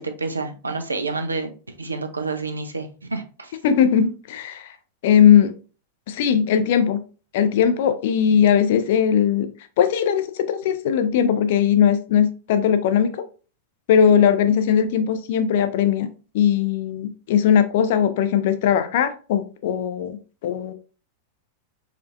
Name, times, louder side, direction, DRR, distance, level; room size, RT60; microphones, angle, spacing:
voice 1, 0.0-1.5 1.8-3.5, right 3 dB, 80° right, 0.4 m, -29 dB
voice 2, 3.6-4.7 5.0-5.5 6.1-7.0 7.3-9.5 9.8-13.2 13.9-16.1 16.3-20.2 20.4-20.7, left 8 dB, 55° left, 0.4 m, -19 dB
4.2 x 2.5 x 2.4 m
figure-of-eight pair, 90°, 0 cm